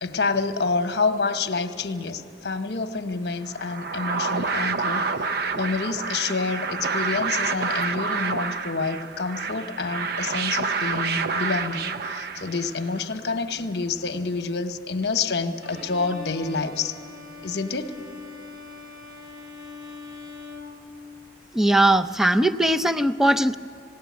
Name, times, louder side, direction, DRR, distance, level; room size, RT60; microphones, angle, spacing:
voice 1, 0.0-5.0 5.6-17.0 17.4-17.9, left 4 dB, 65° left, 8 dB, 1.0 m, -28 dB
sound 1, 3.5-12.9, right 4 dB, 60° right, 0.5 m, -28 dB
Bowed string instrument, 15.6-21.5, left 4 dB, 75° right, 3.6 m, -42 dB
voice 2, 21.5-23.5, right 1 dB, 5° right, 8 dB, 0.4 m, -20 dB
19.5 x 17.0 x 9.4 m, 2.5 s
head